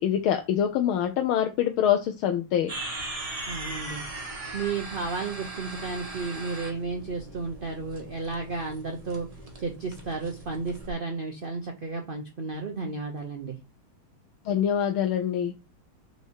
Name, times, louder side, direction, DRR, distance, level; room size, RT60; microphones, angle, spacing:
voice 1, 0.0-2.7 14.4-15.5, left 9 dB, 80° left, 5 dB, 1.6 m, -25 dB
sound 1, 2.7-10.9, right 2 dB, 20° right, 1.0 m, -39 dB
voice 2, 3.5-4.0 4.5-9.3 9.6-13.6, right 4 dB, 50° right, 2 dB, 0.6 m, -33 dB
5.6 x 4.7 x 4.6 m, 0.27 s
omnidirectional pair, 2.3 m